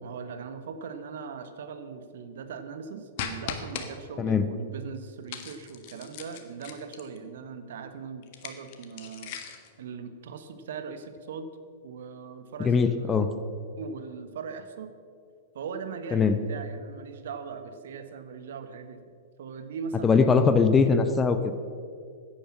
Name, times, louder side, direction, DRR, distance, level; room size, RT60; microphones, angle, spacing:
voice 1, 0.0-9.4 9.8-11.5 11.8-13.4 13.8-14.9 15.5-19.0 19.4-20.3, right 5 dB, 60° right, 9 dB, 1.3 m, -39 dB
sound 1, 3.2-3.9 5.3-7.2 8.2-9.7, left 8 dB, 50° left, 1.4 m, -38 dB
voice 2, 12.6-13.3 16.1-16.4 20.0-21.6, left 5 dB, 20° left, 9 dB, 0.8 m, -21 dB
15.5 x 10.0 x 5.9 m, 2.2 s
figure-of-eight pair, 100°, 0 cm